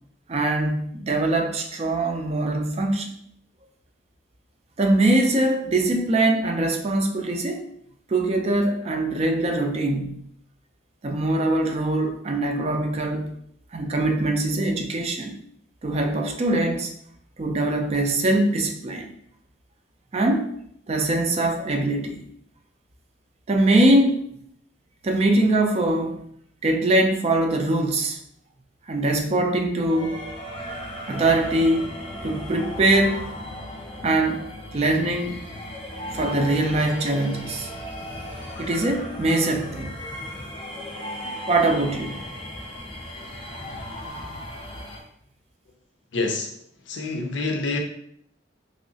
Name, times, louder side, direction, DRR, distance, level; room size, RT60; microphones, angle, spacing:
voice 1, 0.3-3.1 4.8-7.6 8.1-10.2 11.0-13.4 13.7-15.4 15.8-16.9 17.4-19.1 20.1-20.5 20.9-22.2 23.5-24.2 25.0-26.2 26.6-28.2 28.9-30.2 31.1-31.9 32.2-33.2 34.0-34.4 34.7-35.4 36.1-37.7 38.6-40.0 41.5-42.2, right 2 dB, 35° right, 4 dB, 0.4 m, -22 dB
sound 1, 29.9-45.0, equal, 30° left, 0.6 m, -36 dB
voice 2, 46.1-46.6 46.9-47.8, left 3 dB, 75° left, 4 dB, 0.5 m, -27 dB
3.0 x 2.7 x 2.7 m, 0.69 s
head